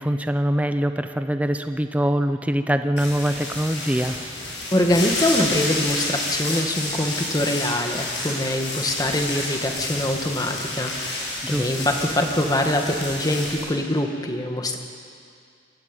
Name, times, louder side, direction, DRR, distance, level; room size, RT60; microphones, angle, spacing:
voice 1, 0.0-4.2 11.4-11.7, equal, 10° right, 9 dB, 0.7 m, -23 dB
sound 1, 3.0-13.6, left 2 dB, 80° left, 7.8 m, -30 dB
voice 2, 4.7-14.8, left 1 dB, 20° left, 3 dB, 1.7 m, -24 dB
24.0 x 14.5 x 9.0 m, 2.4 s
head